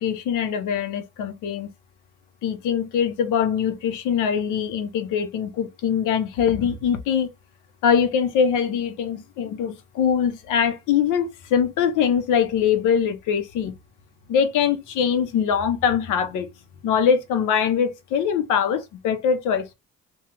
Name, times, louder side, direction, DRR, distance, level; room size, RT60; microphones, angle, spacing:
voice 1, 0.0-1.7 2.4-7.3 7.8-13.7 14.3-16.5 16.8-19.7, left 7 dB, 90° left, 0.7 m, -22 dB
2.9 x 2.3 x 3.2 m
cardioid pair, 90°, 30 cm